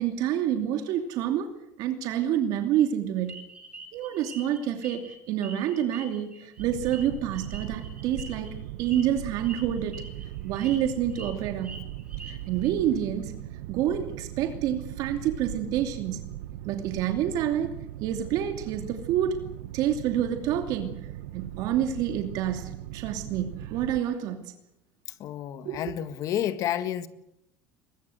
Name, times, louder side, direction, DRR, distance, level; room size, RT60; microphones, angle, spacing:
voice 1, 0.0-1.5 1.8-3.4 3.9-10.0 10.4-11.8 12.3-13.3 13.7-16.3 16.6-17.7 18.0-19.3 19.7-24.4 25.6-25.9, right 10 dB, 65° right, 2.7 m, -28 dB
sound 1, 3.3-5.1 5.4-8.5 8.8-9.0 9.4-9.6 9.9-10.2 10.6-11.3 11.6-12.7, right 3 dB, 15° right, 6.3 m, -45 dB
Boat Water vehicle, 6.6-24.0, right 13 dB, 90° right, 1.2 m, -39 dB
voice 2, 25.2-27.1, left 11 dB, 55° left, 1.8 m, -30 dB
22.5 x 21.5 x 8.0 m
supercardioid pair, 115°, 7 cm